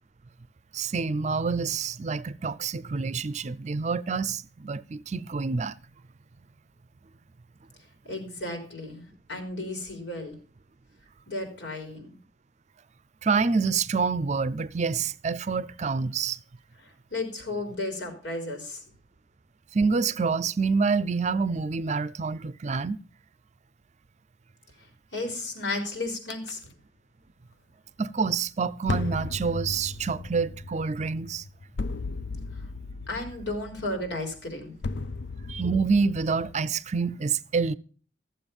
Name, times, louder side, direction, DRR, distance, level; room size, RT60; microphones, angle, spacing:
voice 1, 0.7-5.7 13.2-16.4 19.7-23.0 28.0-31.4 35.5-37.7, right 5 dB, 40° right, 0.5 m, -27 dB
voice 2, 8.0-10.4 11.3-12.2 16.8-18.8 25.1-26.7 32.5-32.6 33.1-34.7, left 2 dB, 85° left, 3.8 m, -34 dB
sound 1, 26.3-26.5 28.9-36.6, left 3 dB, 70° left, 0.5 m, -36 dB
14.0 x 7.6 x 5.2 m
head